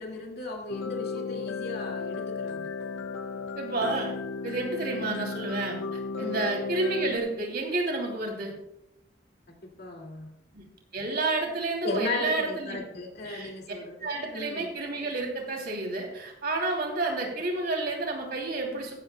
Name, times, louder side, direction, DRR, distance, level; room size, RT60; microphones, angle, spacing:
voice 1, 0.0-2.7 6.2-6.4 9.8-10.3 11.8-14.7, left 2 dB, 60° left, 1 dB, 2.1 m, -36 dB
sound 1, 0.7-7.2, left 5 dB, 90° left, 0.6 m, -34 dB
voice 2, 3.6-4.1 4.4-8.5 10.5-10.6 10.9-12.8 13.2-13.5 14.0-18.9, right 2 dB, 55° right, 1 dB, 2.9 m, -30 dB
14.5 x 12.0 x 2.2 m, 0.83 s
head